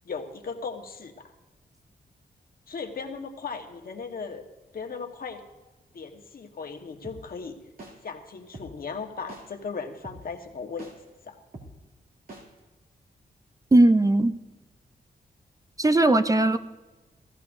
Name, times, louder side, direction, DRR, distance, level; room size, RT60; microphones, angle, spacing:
voice 1, 0.0-1.3 2.7-4.4 4.7-5.4 5.9-7.6 8.0-10.9 11.2-11.4, left 5 dB, 60° left, 4 dB, 1.3 m, -37 dB
sound 1, 7.0-7.2 7.8-7.9 8.5-8.7 9.3-9.4 10.0-10.2 10.8-10.9 11.5-11.7 12.3-12.4, right 2 dB, 55° right, 2.6 m, -42 dB
voice 2, 13.7-14.3 15.8-16.6, right 2 dB, 20° right, 10 dB, 0.5 m, -18 dB
16.0 x 14.5 x 2.6 m, 1.2 s
cardioid pair, 75°, 17 cm